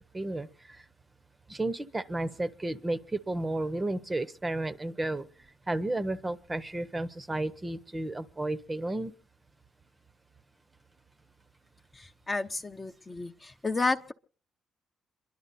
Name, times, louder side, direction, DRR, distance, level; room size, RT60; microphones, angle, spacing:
voice 1, 0.1-0.8 1.5-5.3 5.7-9.1, right 2 dB, 15° right, 0.8 m, -32 dB
voice 2, 12.3-14.1, left 3 dB, 20° left, 0.7 m, -31 dB
27.5 x 11.5 x 4.1 m
cardioid pair, 145°, 0 cm